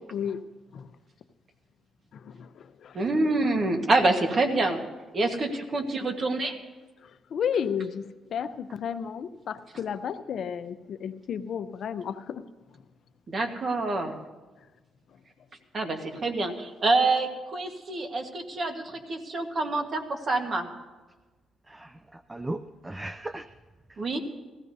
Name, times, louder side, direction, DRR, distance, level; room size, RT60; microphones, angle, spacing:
voice 1, 0.1-0.4 0.7-0.9 2.1-3.0 7.0-8.0 8.3-12.4, left 7 dB, 60° left, 10 dB, 0.6 m, -32 dB
voice 2, 2.9-4.8 5.1-6.6 13.3-14.2 15.7-20.7 24.0-24.2, right 2 dB, 45° right, 5 dB, 1.4 m, -26 dB
voice 3, 21.7-23.5 23.9-24.2, right 1 dB, 15° right, 11 dB, 0.4 m, -38 dB
20.0 x 15.0 x 2.7 m, 1.3 s
cardioid pair, 90°, 0 cm